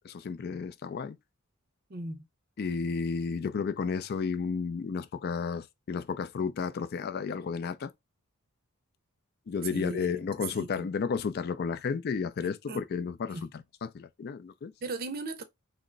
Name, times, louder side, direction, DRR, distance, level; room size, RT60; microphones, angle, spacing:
voice 1, 0.0-1.2 2.6-7.9 9.5-14.7, left 5 dB, 45° left, 0.3 m, -32 dB
voice 2, 1.9-2.3 9.7-10.3 10.5-10.9 12.4-12.8 13.3-13.4 14.8-15.4, right 2 dB, 45° right, 0.6 m, -38 dB
2.9 x 2.0 x 3.8 m
head